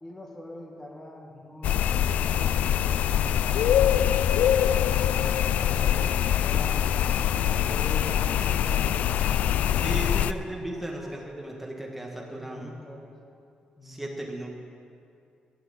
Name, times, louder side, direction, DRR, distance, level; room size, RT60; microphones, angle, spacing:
voice 1, 0.0-4.1 4.7-7.0 7.6-11.3 12.1-13.2 13.8-14.1, left 1 dB, 15° left, -1 dB, 1.8 m, -44 dB
sound 1, 1.6-10.3, left 10 dB, 75° left, 0.3 m, -24 dB
voice 2, 9.8-12.7 13.8-14.5, right 1 dB, 5° right, -1 dB, 1.6 m, -36 dB
13.5 x 6.1 x 8.6 m, 2.4 s
cardioid pair, 165°, 3 cm